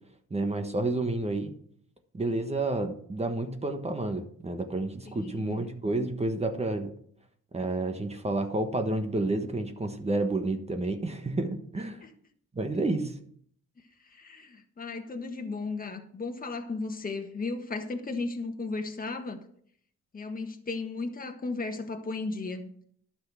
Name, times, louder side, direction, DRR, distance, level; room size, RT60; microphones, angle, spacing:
voice 1, 0.3-1.5 2.1-6.9 7.5-12.0 12.5-13.1, right 2 dB, 20° right, 1.3 m, -30 dB
voice 2, 5.1-5.7 12.0-12.1 14.1-19.4 20.1-22.7, left 3 dB, 30° left, 1.5 m, -35 dB
11.5 x 6.0 x 6.2 m
cardioid pair, 90°, 30 cm